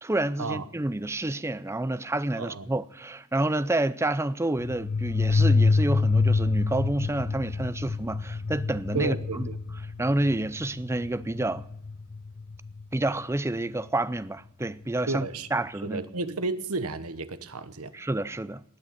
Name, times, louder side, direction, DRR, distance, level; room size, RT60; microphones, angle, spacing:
voice 1, 0.0-9.5 10.0-11.6 12.9-15.3 15.5-16.0 17.9-18.6, right 1 dB, 10° right, 0.5 m, -29 dB
voice 2, 2.3-2.7 8.9-9.6 15.1-15.5 15.8-17.9, right 3 dB, 85° right, 1.2 m, -32 dB
sound 1, 4.6-13.0, left 3 dB, 45° left, 0.5 m, -27 dB
19.5 x 6.7 x 9.1 m
head